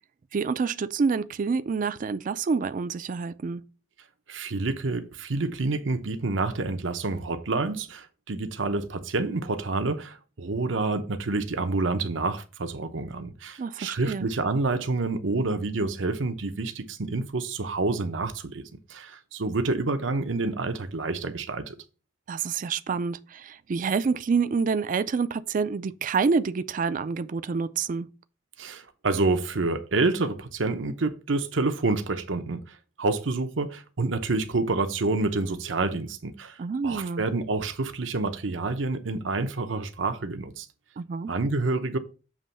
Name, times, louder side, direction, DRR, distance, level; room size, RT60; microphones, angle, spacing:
voice 1, 0.3-3.6 13.6-14.3 22.3-28.1 36.6-37.2 41.0-41.3, right 5 dB, 45° right, 0.4 m, -27 dB
voice 2, 4.3-18.6 18.9-21.8 28.6-36.6 36.8-40.7 41.3-42.0, right 3 dB, 90° right, 0.8 m, -28 dB
7.3 x 3.0 x 5.5 m
head